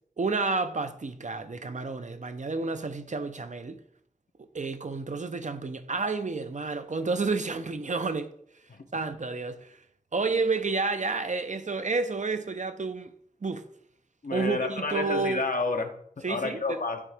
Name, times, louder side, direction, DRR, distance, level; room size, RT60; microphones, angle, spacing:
voice 1, 0.2-3.8 4.5-8.3 8.9-9.8 10.1-13.1 13.4-13.7 14.3-15.4 16.2-16.8, right 4 dB, 60° right, 0.5 m, -30 dB
voice 2, 14.2-17.0, left 3 dB, 80° left, 0.8 m, -30 dB
9.4 x 3.6 x 3.4 m
wide cardioid pair, 40°, 14 cm